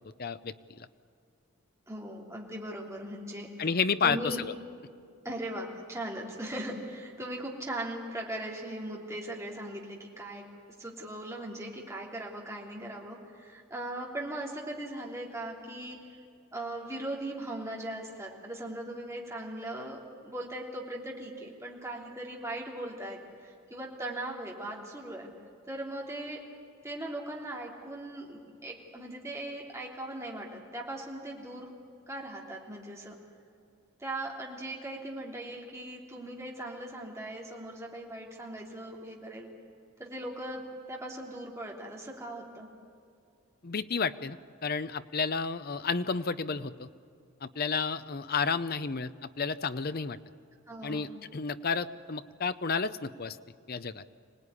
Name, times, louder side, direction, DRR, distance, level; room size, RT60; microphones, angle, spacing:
voice 1, 0.2-0.9 3.6-4.5 43.6-46.9 47.4-50.2 50.8-53.4 53.7-54.0, left 5 dB, 45° left, 13 dB, 0.7 m, -31 dB
voice 2, 1.9-3.7 4.0-4.4 5.2-10.4 10.8-16.0 16.5-25.3 25.7-26.4 26.8-31.7 32.1-33.1 34.0-39.5 40.0-40.6 40.9-42.7 50.7-51.1, right 1 dB, 15° right, -2 dB, 3.2 m, -39 dB
25.5 x 18.5 x 9.9 m, 2.4 s
head